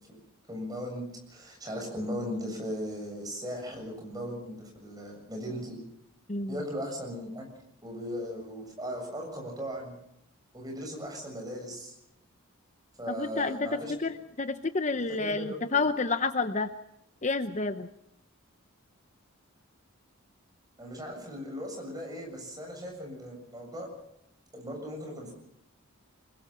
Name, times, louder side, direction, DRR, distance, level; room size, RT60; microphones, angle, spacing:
voice 1, 0.5-5.8 6.5-7.5 7.8-9.9 10.5-12.0 13.0-14.2 15.1-15.8 20.8-23.9 24.5-25.3, equal, 20° right, 1 dB, 7.2 m, -38 dB
voice 2, 6.3-6.6 13.1-16.7 17.2-17.9, left 3 dB, 35° left, 10 dB, 0.8 m, -29 dB
25.0 x 21.5 x 5.8 m, 0.81 s
head